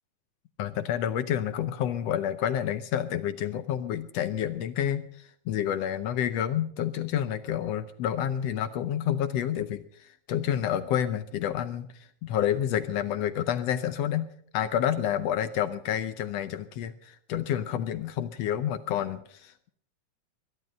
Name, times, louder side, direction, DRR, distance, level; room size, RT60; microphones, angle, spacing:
voice 1, 0.6-14.3 14.5-19.7, left 10 dB, 70° left, 12 dB, 1.6 m, -29 dB
21.5 x 11.5 x 5.3 m, 0.62 s
omnidirectional pair, 3.4 m